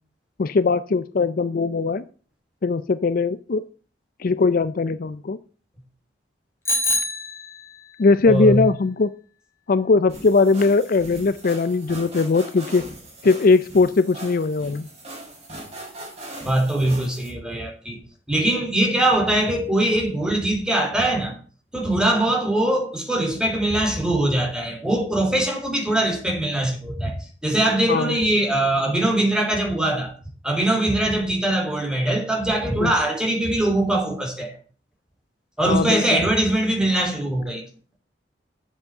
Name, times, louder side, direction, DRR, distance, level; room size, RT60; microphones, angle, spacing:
voice 1, 0.4-2.0 2.6-3.6 4.2-5.4 8.0-9.1 9.7-12.8 13.2-14.9 27.9-28.2 32.8-32.9 35.6-36.2, left 3 dB, 50° left, 0.5 m, -20 dB
Bicycle bell, 6.7-7.9, left 1 dB, 15° left, 2.8 m, -25 dB
voice 2, 8.2-8.6 16.4-18.0 18.3-21.3 21.7-27.2 27.4-30.1 30.4-34.5 35.6-37.6, right 1 dB, 5° right, 3.0 m, -22 dB
sound 1, 10.1-17.3, right 1 dB, 35° right, 5.7 m, -39 dB
8.0 x 7.2 x 7.8 m
head